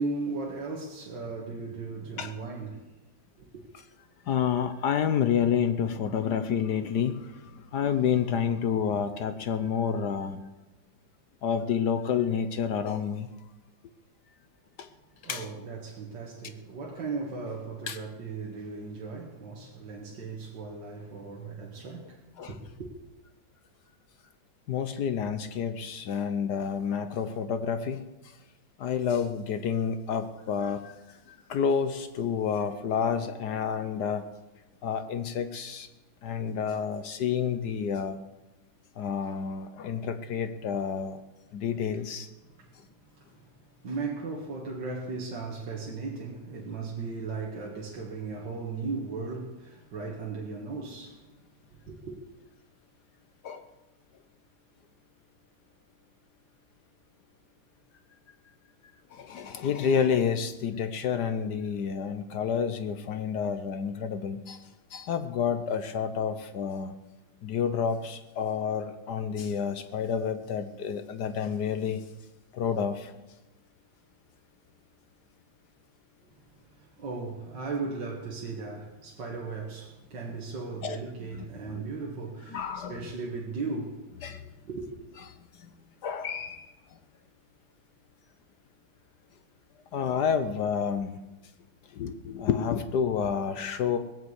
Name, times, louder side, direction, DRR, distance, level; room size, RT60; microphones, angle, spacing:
voice 1, 0.0-2.9 3.4-3.6 15.3-22.2 22.5-22.9 42.6-42.7 43.2-43.5 43.8-51.2 51.8-52.2 76.7-84.9, right 4 dB, 60° right, 2.2 m, -37 dB
voice 2, 4.2-10.4 11.4-13.3 14.8-14.9 15.2-15.5 17.9-18.0 22.4-22.6 24.7-28.0 28.2-28.4 28.8-34.3 34.8-35.9 36.2-38.2 39.0-41.2 41.5-42.3 53.4-53.6 59.1-66.9 67.4-72.0 72.5-73.1 80.8-81.0 81.3-81.9 82.5-83.0 84.2-84.5 85.5-85.7 86.0-86.7 89.9-91.2 91.9-94.0, left 7 dB, 65° left, 1.2 m, -29 dB
19.0 x 7.9 x 8.1 m
omnidirectional pair, 2.2 m